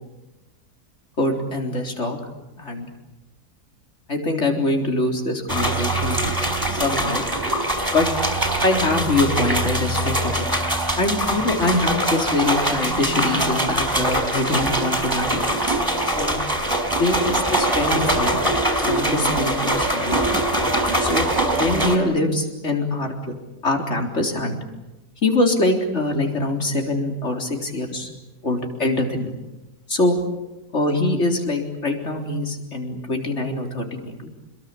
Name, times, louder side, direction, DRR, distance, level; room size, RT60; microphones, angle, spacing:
voice 1, 1.2-2.2 2.6-2.9 4.1-6.2 6.7-7.2 7.9-8.1 8.6-10.6 11.0-15.4 16.1-16.4 16.9-18.4 18.8-20.2 21.0-21.3 21.5-23.3 23.6-24.6 25.2-28.1 28.4-29.3 29.9-30.2 30.7-34.3, left 2 dB, 45° left, 3 dB, 4.2 m, -23 dB
sound 1, 5.5-22.0, right 1 dB, 10° right, 4.5 m, -22 dB
27.5 x 21.5 x 8.6 m, 1.0 s
omnidirectional pair, 1.7 m